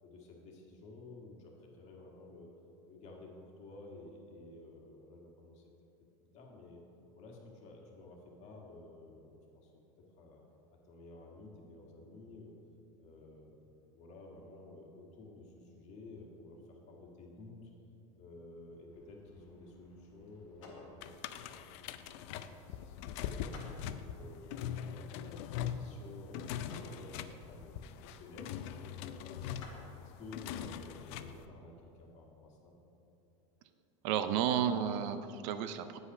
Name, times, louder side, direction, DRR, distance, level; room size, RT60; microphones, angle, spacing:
voice 1, 0.0-2.5 2.9-5.7 6.3-6.8 7.1-9.7 10.0-10.4 10.7-12.6 13.0-13.6 13.9-17.7 18.2-21.6 22.0-23.6 24.0-24.4 24.8-26.4 26.8-28.5 29.0-29.6 30.0-32.8, left 2 dB, 45° left, 0 dB, 1.7 m, -53 dB
sound 1, 18.9-31.4, left 3 dB, 80° left, 1.8 m, -59 dB
sound 2, 21.0-31.4, left 9 dB, 60° left, 0.4 m, -42 dB
voice 2, 34.0-36.0, right 9 dB, 60° right, 11 dB, 0.5 m, -32 dB
8.2 x 5.6 x 5.4 m, 2.9 s
supercardioid pair, 125°, 16 cm